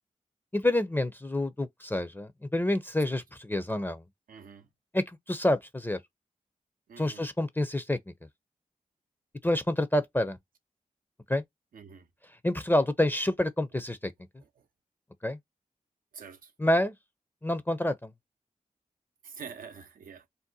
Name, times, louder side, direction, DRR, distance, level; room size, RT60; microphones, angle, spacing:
voice 1, 0.5-4.0 4.9-6.0 7.0-8.0 9.4-10.4 11.3-11.4 12.4-14.1 15.2-15.4 16.6-16.9 17.4-18.1, left 1 dB, 15° left, 0.5 m, -28 dB
voice 2, 4.3-4.7 6.9-7.3 11.7-12.1 16.1-16.5 19.2-20.2, right 6 dB, 85° right, 0.6 m, -46 dB
2.7 x 2.1 x 3.8 m
cardioid pair, 45°, 14 cm